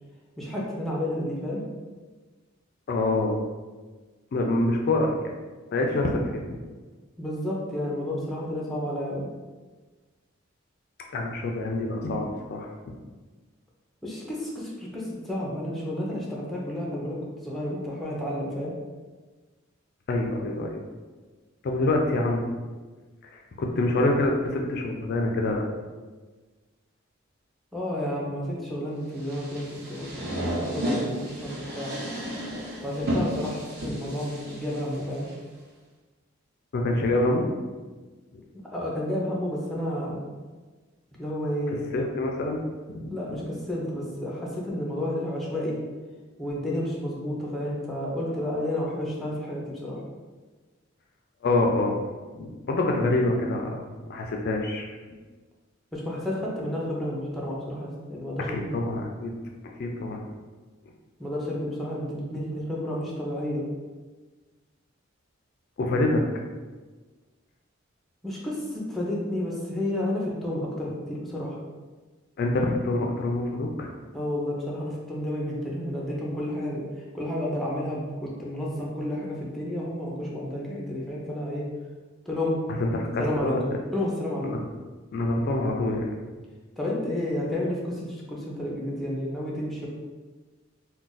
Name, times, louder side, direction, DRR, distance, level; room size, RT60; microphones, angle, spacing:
voice 1, 0.4-1.6 7.2-9.3 14.0-17.2 17.4-18.7 27.7-31.9 32.8-35.3 38.7-40.2 41.2-41.8 43.1-45.8 46.4-50.0 55.9-58.7 61.2-63.6 68.2-71.6 74.1-76.8 77.1-81.7 82.3-82.6 83.2-83.6 83.9-84.5 86.8-89.9, left 1 dB, ahead, -5 dB, 0.6 m, -31 dB
voice 2, 2.9-3.4 4.3-5.1 5.7-6.4 11.1-12.7 20.1-20.9 21.6-22.6 23.2-25.6 36.7-37.5 38.3-38.4 41.9-42.6 42.9-43.6 51.4-52.0 52.3-55.0 58.5-59.3 59.8-60.2 65.8-66.2 72.4-73.9 82.7-83.6 84.4-84.6 85.1-86.1, left 2 dB, 55° left, 1 dB, 0.4 m, -26 dB
sound 1, 29.2-35.3, equal, 55° right, 0.8 m, -32 dB
2.4 x 2.2 x 3.9 m, 1.3 s
head